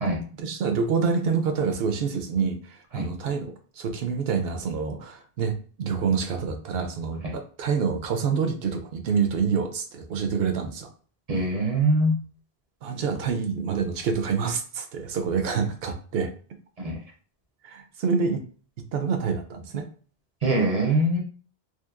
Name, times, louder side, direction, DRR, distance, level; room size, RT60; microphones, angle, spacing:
voice 1, 0.4-10.9 12.8-16.3 17.6-18.4 18.9-19.8, right 6 dB, 75° right, 6 dB, 0.8 m, -27 dB
voice 2, 11.3-12.2 16.8-17.0 20.4-21.2, right 1 dB, 50° right, 0 dB, 0.5 m, -23 dB
2.8 x 2.4 x 2.4 m, 0.41 s
omnidirectional pair, 1.0 m